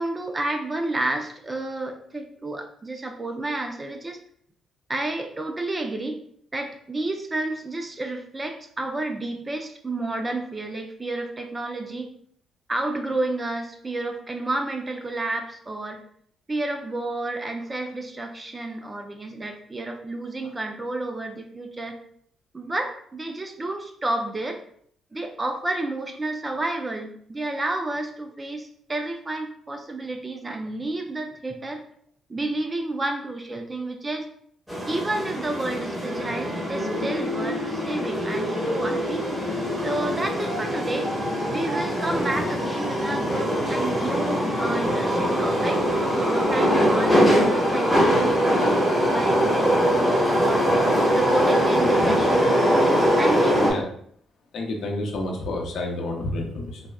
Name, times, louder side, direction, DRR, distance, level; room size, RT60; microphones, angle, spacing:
voice 1, 0.0-4.2 4.9-6.2 6.5-12.1 12.7-16.0 16.5-22.0 22.5-24.6 25.1-31.8 32.3-34.3 34.9-39.3 39.8-41.1 41.5-48.8 49.1-50.6 51.2-52.5 53.2-53.7, right 2 dB, 25° right, 5 dB, 0.5 m, -30 dB
sound 1, 34.7-53.7, equal, 5° right, 1.3 m, -22 dB
voice 2, 54.5-56.8, left 2 dB, 70° left, 1 dB, 0.7 m, -29 dB
3.9 x 2.2 x 2.3 m, 0.64 s
cardioid pair, 90°, 0 cm